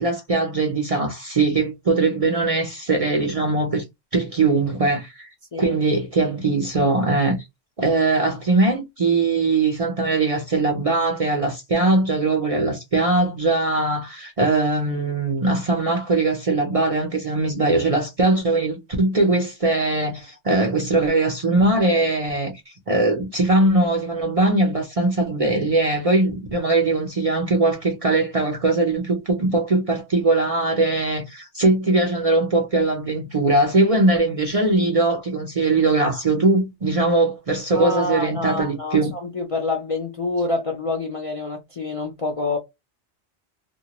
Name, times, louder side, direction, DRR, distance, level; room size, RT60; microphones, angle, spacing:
voice 1, 0.0-3.8 4.1-5.3 5.6-7.4 7.8-39.1, right 2 dB, 40° right, 0.5 m, -21 dB
voice 2, 37.7-42.6, left 3 dB, 45° left, 0.5 m, -27 dB
2.2 x 2.2 x 2.9 m
omnidirectional pair, 1.2 m